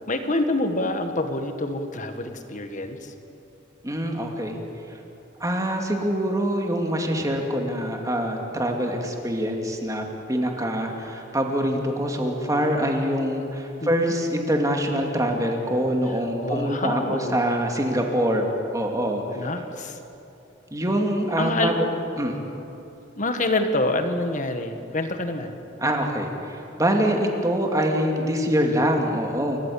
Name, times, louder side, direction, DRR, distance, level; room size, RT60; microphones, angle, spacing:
voice 1, 0.1-3.1 6.8-6.9 13.8-14.1 16.1-17.4 19.3-20.0 21.4-21.8 23.2-25.6, left 2 dB, 40° left, 7 dB, 1.8 m, -27 dB
voice 2, 3.8-4.6 5.4-18.4 18.7-19.2 20.7-21.9 22.2-22.3 25.8-29.6, equal, 15° right, 2 dB, 2.5 m, -24 dB
29.0 x 15.0 x 8.7 m, 2.9 s
head